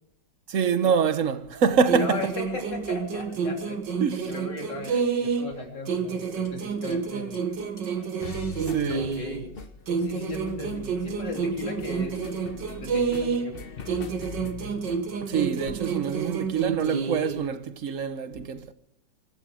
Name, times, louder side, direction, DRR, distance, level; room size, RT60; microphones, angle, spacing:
voice 1, 0.5-2.2 4.0-4.3 8.6-9.1 15.2-18.7, right 6 dB, 50° right, 1.2 m, -25 dB
sound 1, 1.4-3.8 4.7-5.3 6.4-6.6 6.9-7.0 7.3-7.4 7.8-17.5, left 4 dB, 45° left, 0.8 m, -43 dB
sound 2, 1.9-5.6 5.9-9.5 9.9-13.6 13.9-17.5, right 5 dB, 75° right, 2.3 m, -29 dB
voice 2, 2.0-3.8 4.2-7.4 8.9-9.7 10.0-12.2 12.8-13.7, left 2 dB, 70° left, 4.0 m, -37 dB
24.0 x 12.0 x 4.9 m
omnidirectional pair, 2.0 m